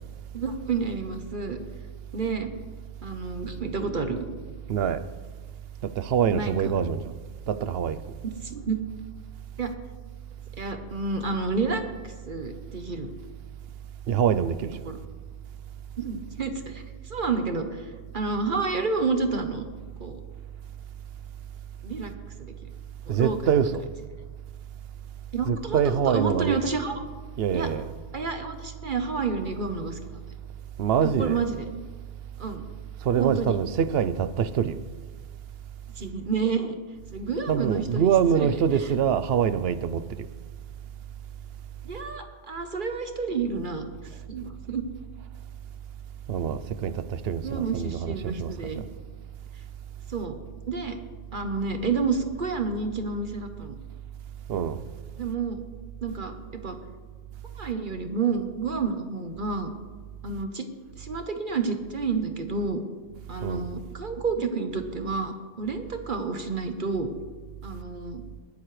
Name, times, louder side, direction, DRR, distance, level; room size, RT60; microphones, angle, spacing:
voice 1, 0.3-1.6 2.1-2.5 3.0-4.2 6.3-6.7 8.2-8.8 9.6-9.7 10.6-13.1 14.8-15.0 16.0-19.6 20.0-20.2 21.8-22.1 22.4-22.5 23.1-23.4 25.3-27.0 27.5-27.7 28.1-30.2 31.0-31.7 32.4-32.6 33.2-33.6 36.0-36.8 37.1-38.5 41.8-43.9 44.3-44.8 47.4-48.8 50.1-50.4 50.7-51.0 51.3-53.8 55.2-55.6 56.0-56.8 57.5-59.7 60.2-60.7 61.0-62.8 63.3-67.1 67.6-68.2, right 4 dB, 45° right, 1.1 m, -30 dB
voice 2, 4.7-5.0 5.8-7.1 7.5-8.0 14.1-14.8 23.1-23.8 25.4-26.6 27.4-27.9 30.8-31.4 33.0-34.8 37.5-40.3 46.3-48.9 54.5-54.8 63.4-63.6, right 8 dB, 65° right, 0.8 m, -25 dB
20.0 x 10.5 x 3.3 m
omnidirectional pair, 1.2 m